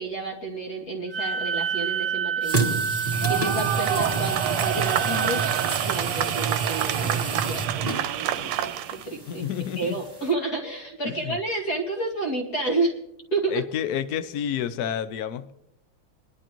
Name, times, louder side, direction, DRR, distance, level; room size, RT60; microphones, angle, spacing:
voice 1, 0.0-9.4 9.8-13.0 13.3-13.6, right 2 dB, 45° left, -1 dB, 2.8 m, -30 dB
Wind instrument woodwind instrument, 1.1-5.8, right 6 dB, 60° right, 1.9 m, -29 dB
sound 1, 2.4-10.3, right 3 dB, 20° right, 1.7 m, -30 dB
sound 2, 3.1-9.0, right 12 dB, 85° right, 1.5 m, -27 dB
voice 2, 9.3-10.0 11.0-11.4 13.5-15.5, left 9 dB, 75° left, 11 dB, 0.8 m, -29 dB
24.5 x 11.5 x 3.0 m, 0.83 s
omnidirectional pair, 2.3 m